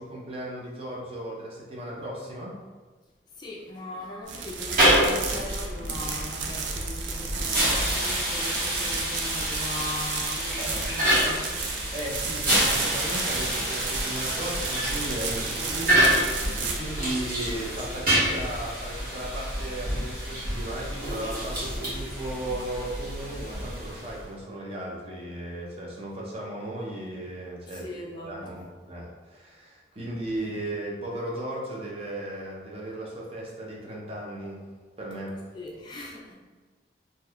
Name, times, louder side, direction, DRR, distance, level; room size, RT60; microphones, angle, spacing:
voice 1, 0.0-2.6 11.9-34.6 35.0-35.5, right 1 dB, 30° right, -3 dB, 0.5 m, -36 dB
voice 2, 3.3-11.5 27.7-28.6 35.5-36.3, left 1 dB, 25° left, -3 dB, 0.3 m, -39 dB
sound 1, 4.2-18.2, right 5 dB, 80° right, 0.4 m, -34 dB
sound 2, 4.6-24.2, right 1 dB, 50° right, 1.1 m, -28 dB
2.7 x 2.2 x 3.4 m, 1.4 s
head